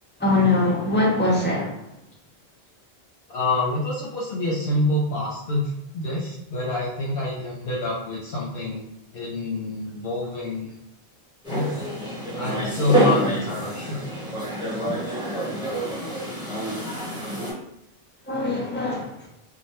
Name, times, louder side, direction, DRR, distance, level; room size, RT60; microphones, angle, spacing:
voice 1, 0.2-1.8 18.3-19.3, left 2 dB, 15° left, -4 dB, 0.4 m, -22 dB
voice 2, 3.3-8.8 9.1-10.7 11.5-11.9 12.4-14.0, left 2 dB, 70° left, -5 dB, 0.8 m, -27 dB
sound 1, 11.4-17.5, right 1 dB, 5° right, 0.8 m, -27 dB
2.2 x 2.1 x 2.9 m, 0.86 s
omnidirectional pair, 1.0 m